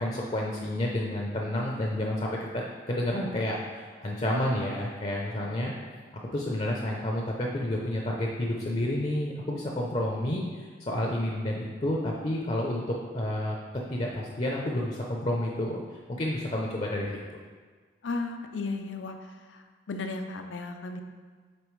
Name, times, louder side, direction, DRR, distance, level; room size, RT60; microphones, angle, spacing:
voice 1, 0.0-5.7 6.3-12.8 13.1-13.5 13.9-15.8 16.1-17.2, left 1 dB, 35° left, -2 dB, 0.5 m, -30 dB
voice 2, 18.0-21.0, left 3 dB, 85° left, 5 dB, 0.5 m, -35 dB
8.4 x 3.8 x 3.2 m, 1.5 s
head